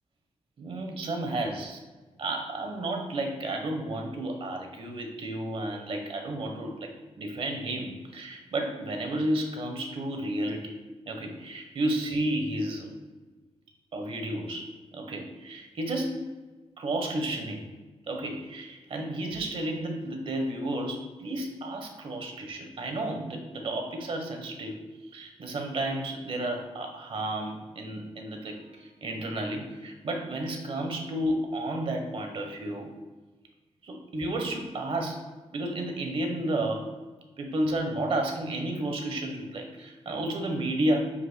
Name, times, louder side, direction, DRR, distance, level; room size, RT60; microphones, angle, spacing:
voice 1, 0.6-1.8 2.2-10.7 11.1-12.9 13.9-16.3 16.8-17.7 18.1-24.8 25.1-32.9 33.8-35.2 35.5-36.9 37.4-41.1, right 1 dB, 55° right, 4 dB, 1.1 m, -32 dB
9.6 x 5.4 x 2.2 m, 1.2 s
wide cardioid pair, 155°, 11 cm